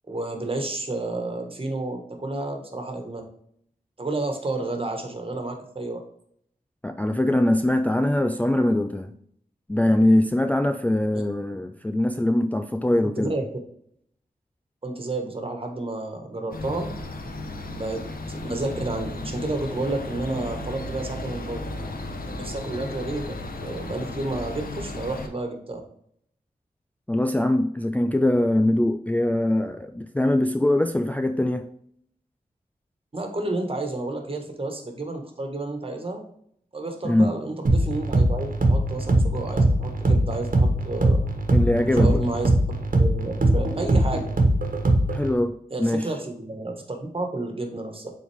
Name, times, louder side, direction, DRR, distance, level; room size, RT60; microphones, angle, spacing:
voice 1, 0.1-3.2 4.0-6.0 13.2-13.4 14.8-16.9 17.7-21.6 22.3-25.8 33.1-36.2 36.7-41.2 42.0-42.5 42.9-44.3 45.7-48.1, right 2 dB, 35° right, 1.6 m, -31 dB
voice 2, 6.8-9.1 9.7-13.4 27.1-31.7 37.0-37.3 41.5-42.2 45.1-46.2, left 1 dB, 10° left, 0.4 m, -22 dB
sound 1, 16.5-25.3, left 2 dB, 70° left, 1.0 m, -34 dB
sound 2, 37.7-45.3, right 1 dB, 65° right, 1.3 m, -21 dB
7.4 x 4.1 x 3.5 m
wide cardioid pair, 70°, 15 cm